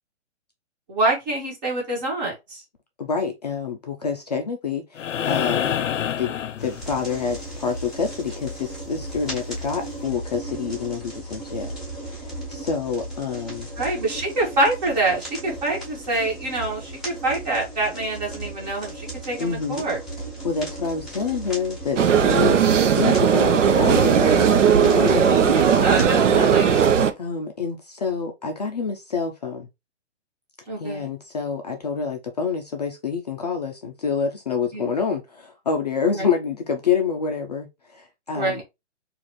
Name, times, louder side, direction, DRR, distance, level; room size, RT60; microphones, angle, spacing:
voice 1, 0.9-2.6 13.8-20.0 25.4-26.9 30.7-31.1 34.7-34.9 36.1-36.3 38.3-38.6, right 2 dB, 35° right, 1.9 m, -26 dB
voice 2, 3.0-5.7 6.2-6.3 6.6-11.7 12.1-13.7 19.4-19.9 20.4-22.6 22.9-25.5 27.2-29.7 30.8-38.6, left 5 dB, 35° left, 0.4 m, -27 dB
sound 1, 5.0-7.3 9.1-9.2, left 9 dB, 90° left, 0.5 m, -27 dB
sound 2, 6.6-26.1, right 1 dB, ahead, 0.8 m, -36 dB
sound 3, 22.0-27.1, right 7 dB, 85° right, 0.7 m, -17 dB
4.0 x 2.5 x 3.0 m
hypercardioid pair, 165°, 36 cm